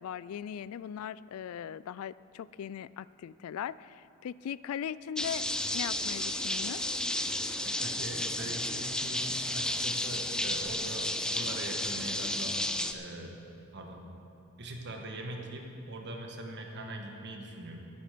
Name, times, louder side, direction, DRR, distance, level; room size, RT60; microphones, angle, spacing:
voice 1, 0.0-5.4 5.7-6.8, left 9 dB, 75° left, 17 dB, 0.3 m, -39 dB
sound 1, 5.2-12.9, left 1 dB, 5° left, 0.4 m, -32 dB
voice 2, 7.6-12.6 12.9-14.1 14.6-17.8, right 1 dB, 55° right, 2 dB, 1.3 m, -42 dB
13.0 x 10.5 x 5.1 m, 2.6 s
head